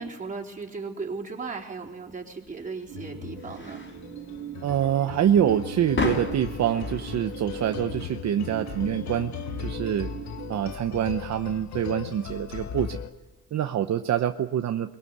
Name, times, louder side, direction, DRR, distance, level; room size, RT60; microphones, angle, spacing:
voice 1, 0.0-3.8, right 4 dB, 25° right, -1 dB, 4.1 m, -36 dB
sound 1, 2.1-13.4, left 3 dB, 35° left, 5.5 m, -38 dB
sound 2, 2.9-13.1, left 8 dB, 60° left, 1.5 m, -38 dB
sound 3, 2.9-10.8, right 9 dB, 80° right, 2.9 m, -41 dB
voice 2, 4.6-9.3 9.6-10.1 10.5-13.0 13.5-14.9, right 10 dB, 55° right, 6 dB, 1.0 m, -25 dB
22.5 x 21.5 x 8.2 m, 1.0 s
cardioid pair, 115°, 32 cm